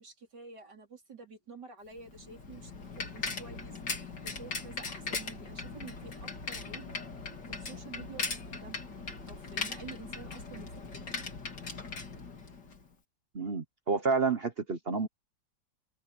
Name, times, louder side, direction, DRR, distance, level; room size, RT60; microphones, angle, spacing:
voice 1, 0.0-2.7 3.1-6.9 7.5-8.9 9.3-11.2, right 4 dB, 75° right, 5.1 m, -50 dB
Bicycle, 2.0-12.9, left 4 dB, 85° left, 3.7 m, -39 dB
voice 2, 13.3-15.1, right 4 dB, 40° right, 1.2 m, -29 dB
open air
omnidirectional pair, 1.8 m